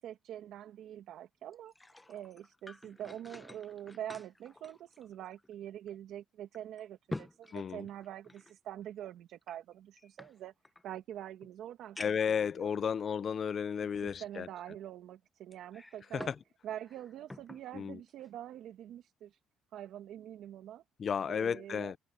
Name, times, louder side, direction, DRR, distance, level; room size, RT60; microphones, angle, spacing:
voice 1, 0.0-1.7 2.1-10.5 10.8-12.7 14.0-16.3 16.6-19.4 19.7-20.8 21.3-21.9, right 11 dB, 75° right, 2.2 m, -45 dB
sound 1, 1.5-5.5 5.9-6.0 6.5-8.5 9.4-10.8 11.4-11.5 12.0-12.4 13.1-13.2 15.5-16.5 16.8-17.7 18.1-18.3, left 2 dB, 15° left, 0.8 m, -48 dB
voice 2, 7.5-7.8 12.0-14.5 16.1-16.3 17.7-18.0 21.0-22.0, left 7 dB, 45° left, 0.6 m, -33 dB
cardioid pair, 110°, 0 cm